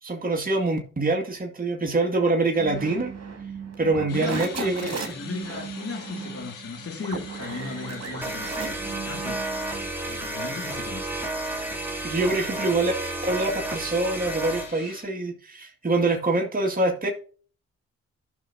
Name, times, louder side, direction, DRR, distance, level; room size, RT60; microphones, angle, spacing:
voice 1, 0.0-3.1 3.8-5.0 12.0-12.9 13.2-17.1, right 2 dB, 25° right, 2.2 m, -25 dB
sound 1, 2.6-9.9, right 5 dB, 50° right, 2.5 m, -36 dB
sound 2, 4.1-15.0, left 6 dB, 75° left, 1.7 m, -44 dB
voice 2, 4.1-9.5 10.0-11.2, left 4 dB, 45° left, 2.4 m, -36 dB
sound 3, 8.2-14.7, right 2 dB, 5° right, 2.9 m, -32 dB
14.5 x 6.1 x 2.8 m
supercardioid pair, 45°, 32 cm